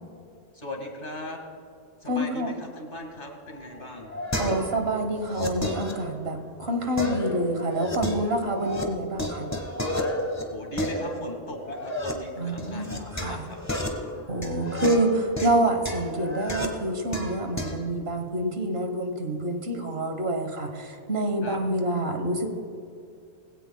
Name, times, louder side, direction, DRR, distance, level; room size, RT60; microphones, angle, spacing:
voice 1, 0.5-1.4 2.0-4.1 10.5-13.6 13.9-14.2 21.4-21.6, left 1 dB, 50° left, 2 dB, 2.1 m, -38 dB
voice 2, 2.1-2.5 4.4-9.5 12.4-13.4 14.3-22.5, right 1 dB, 65° right, 5 dB, 1.5 m, -27 dB
sound 1, 3.5-4.9 5.2-6.5 7.0-8.8 9.1-12.1 12.6-17.8, left 1 dB, 15° left, 1.2 m, -32 dB
20.0 x 16.5 x 2.3 m, 2.3 s
omnidirectional pair, 1.2 m